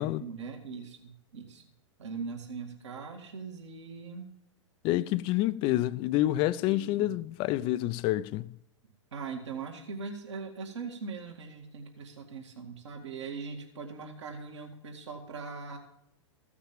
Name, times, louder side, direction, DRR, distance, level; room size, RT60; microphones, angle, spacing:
voice 1, 0.0-1.6 2.0-4.3 6.6-7.2 9.1-15.8, right 5 dB, 70° right, 2.2 m, -41 dB
voice 2, 4.8-8.5, left 15 dB, 35° left, 0.5 m, -28 dB
15.0 x 6.0 x 7.3 m
figure-of-eight pair, 105°, 16 cm